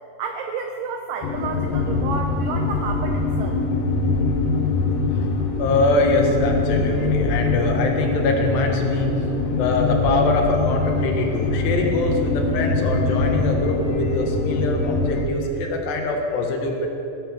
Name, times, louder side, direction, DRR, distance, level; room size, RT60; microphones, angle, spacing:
voice 1, 0.2-3.6, right 5 dB, 85° right, 4 dB, 1.9 m, -31 dB
sound 1, 1.2-15.2, left 3 dB, 90° left, 1.4 m, -23 dB
voice 2, 5.6-9.3 9.5-16.9, left 2 dB, 70° left, 2 dB, 3.6 m, -23 dB
19.5 x 9.9 x 6.8 m, 2.9 s
omnidirectional pair, 5.1 m